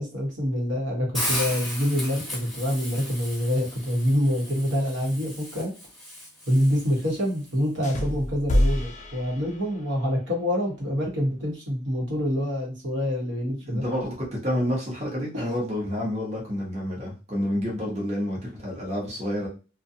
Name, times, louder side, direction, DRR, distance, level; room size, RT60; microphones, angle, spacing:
voice 1, 0.0-5.7 6.5-13.8 15.3-15.4, equal, 70° right, -2 dB, 1.1 m, -26 dB
Hiss, 1.1-7.2, left 1 dB, ahead, 0.8 m, -35 dB
sound 1, 7.8-10.0, left 1 dB, 40° left, 0.5 m, -26 dB
voice 2, 13.6-19.5, equal, 35° right, -3 dB, 0.9 m, -29 dB
2.6 x 2.3 x 2.7 m, 0.32 s
head